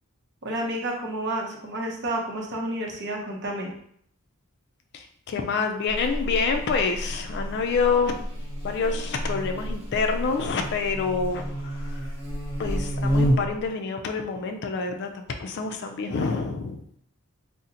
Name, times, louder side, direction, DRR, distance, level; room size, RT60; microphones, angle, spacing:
voice 1, 0.4-3.7, right 1 dB, 50° right, -1 dB, 0.7 m, -30 dB
voice 2, 4.9-12.0 12.6-16.8, left 5 dB, 50° left, 5 dB, 0.4 m, -27 dB
Buzz, 5.9-13.7, equal, 30° right, 1.0 m, -29 dB
2.8 x 2.0 x 3.7 m, 0.68 s
head